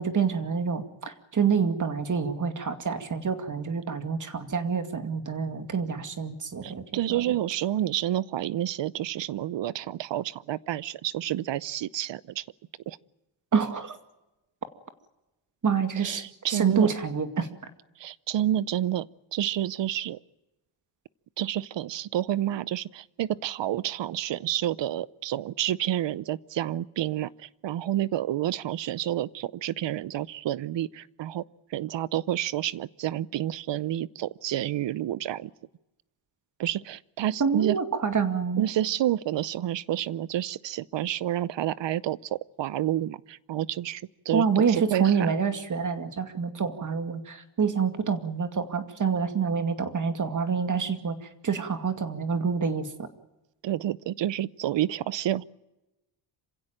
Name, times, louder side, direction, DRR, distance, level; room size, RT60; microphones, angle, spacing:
voice 1, 0.0-6.8 7.1-7.2 13.5-14.0 15.6-17.5 37.4-38.7 44.3-51.2 51.4-53.1, right 6 dB, 40° right, 2.3 m, -27 dB
voice 2, 6.6-12.5 12.9-13.0 16.0-16.9 18.0-20.2 21.4-31.4 31.7-35.5 36.6-37.8 38.6-45.3 53.6-55.4, right 12 dB, 65° right, 0.8 m, -29 dB
27.0 x 16.5 x 9.0 m
cardioid pair, 120°, 47 cm